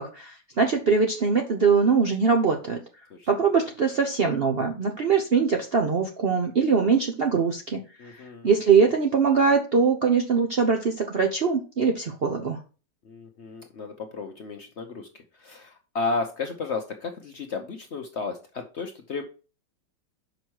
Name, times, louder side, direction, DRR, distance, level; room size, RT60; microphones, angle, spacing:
voice 1, 0.0-2.8 3.3-8.1 8.4-12.6, right 5 dB, 55° right, 4 dB, 0.6 m, -22 dB
voice 2, 8.0-8.5 13.0-15.1 15.3-19.3, left 3 dB, 55° left, 4 dB, 0.8 m, -33 dB
5.8 x 5.3 x 4.6 m, 0.34 s
omnidirectional pair, 1.9 m